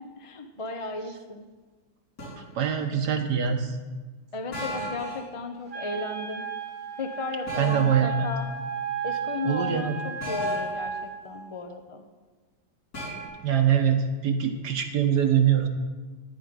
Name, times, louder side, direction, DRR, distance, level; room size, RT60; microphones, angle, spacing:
voice 1, 0.0-1.5 4.3-6.5 7.0-8.5 9.0-12.0, left 3 dB, 35° left, 5 dB, 0.5 m, -35 dB
sound 1, 2.2-2.5 4.5-5.3 7.5-8.0 10.2-10.8 12.9-13.3, left 1 dB, 65° left, 5.7 m, -34 dB
voice 2, 2.6-3.8 7.6-8.3 9.5-10.0 13.4-15.7, right 8 dB, 70° right, 6 dB, 1.7 m, -23 dB
Wind instrument woodwind instrument, 5.7-11.1, right 6 dB, 85° right, 4.5 m, -33 dB
15.0 x 5.1 x 9.6 m, 1.4 s
omnidirectional pair, 1.9 m